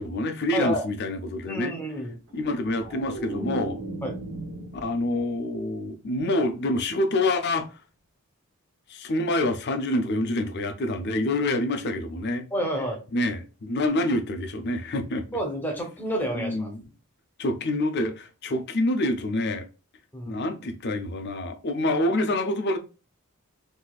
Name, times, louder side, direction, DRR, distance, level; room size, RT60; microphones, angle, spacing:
voice 1, 0.0-1.7 2.3-3.8 4.7-7.8 8.9-12.5 13.1-15.4 16.3-16.8 17.4-19.7 20.3-22.8, left 1 dB, 50° left, 0.6 m, -27 dB
voice 2, 0.5-0.8 1.5-2.1 4.0-4.1 12.5-13.0 15.3-16.7 20.1-20.4, equal, 10° left, 0.9 m, -29 dB
sound 1, 2.3-5.5 5.8-6.2, right 2 dB, 65° right, 1.3 m, -36 dB
3.9 x 2.7 x 2.3 m
head